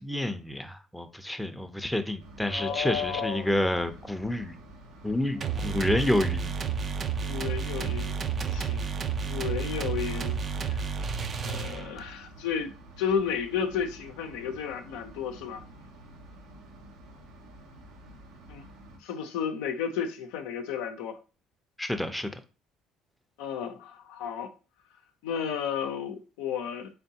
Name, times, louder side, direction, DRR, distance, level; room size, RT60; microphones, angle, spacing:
voice 1, 0.0-4.6 5.0-6.6 21.8-22.3, left 1 dB, 5° left, 0.6 m, -29 dB
sound 1, 2.2-19.0, right 1 dB, 80° right, 0.9 m, -50 dB
voice 2, 2.5-3.5 5.4-6.0 7.2-8.1 8.5-8.8 9.2-10.4 10.6-10.8 11.4-15.6 18.5-18.7 19.0-21.2 23.4-24.5 25.2-26.9, left 7 dB, 85° left, 0.6 m, -33 dB
sound 2, 5.4-12.1, right 6 dB, 45° right, 0.5 m, -31 dB
3.7 x 3.4 x 2.8 m
supercardioid pair, 75°, 0 cm